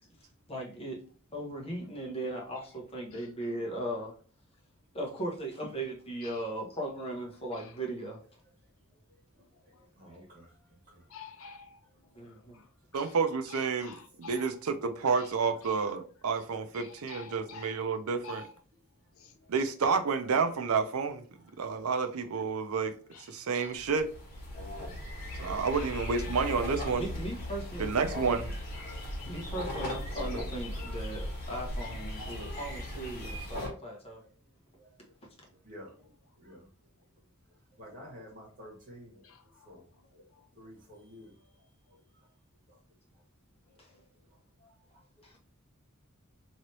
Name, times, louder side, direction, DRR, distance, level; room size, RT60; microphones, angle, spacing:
voice 1, 0.5-1.0 1.3-4.1 4.9-8.2 12.1-12.6 26.9-27.9 29.2-34.2 43.8-43.9 45.2-45.4, right 1 dB, 25° left, 1.0 m, -38 dB
voice 2, 9.6-10.6 10.9-11.0 28.0-28.1 33.6-33.9 34.2-34.3 34.8-34.9 35.6-36.7 37.8-39.3 39.6-39.8 40.1-40.2 40.6-41.5 42.2-42.3 42.7-42.8 44.6-45.0, equal, 40° right, 1.7 m, -51 dB
voice 3, 11.1-11.8 12.1-13.2 13.5-14.5 15.2-15.3 15.6-15.8 16.7-17.8 18.2-18.5 19.1-19.5 23.1-23.7 25.2-25.3 25.7-26.4 39.2-39.8 40.3-40.5 43.7-44.1, left 5 dB, 70° left, 0.6 m, -50 dB
voice 4, 12.9-18.4 19.5-21.2 21.6-22.9 23.3-24.1 25.4-27.0 27.8-28.5 30.3-30.4, right 5 dB, 80° right, 0.5 m, -30 dB
sound 1, 23.7-33.7, left 1 dB, 45° left, 1.6 m, -38 dB
3.1 x 2.9 x 2.7 m
head